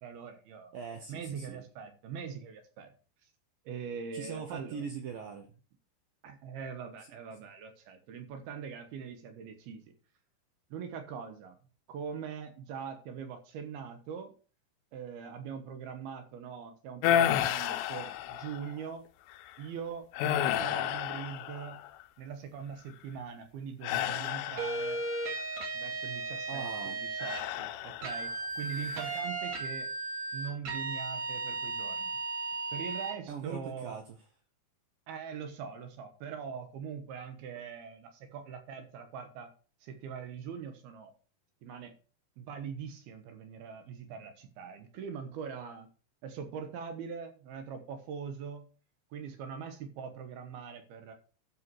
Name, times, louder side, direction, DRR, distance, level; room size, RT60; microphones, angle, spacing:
voice 1, 0.0-0.7 1.1-2.9 3.2-3.3 3.7-4.8 6.2-9.9 10.7-11.6 11.9-14.3 14.9-19.1 19.6-21.9 22.2-25.0 25.7-29.9 30.3-32.2 32.7-34.0 35.1-39.5 39.8-41.1 41.6-42.0 42.4-45.9 46.2-48.7 49.1-51.1, right 6 dB, 70° right, 7 dB, 2.6 m, -42 dB
voice 2, 0.7-1.7 4.1-5.6 26.5-27.0 33.3-34.0, right 6 dB, 90° right, 6 dB, 2.0 m, -41 dB
sound 1, 17.0-18.7 19.3-19.6 20.1-22.0 23.8-25.2 27.2-28.3 28.7-29.2, left 11 dB, 80° left, 2.9 m, -31 dB
sound 2, 24.6-27.4 28.0-33.2, right 3 dB, 50° right, 2.6 m, -36 dB
12.5 x 5.6 x 4.7 m, 0.37 s
omnidirectional pair, 5.5 m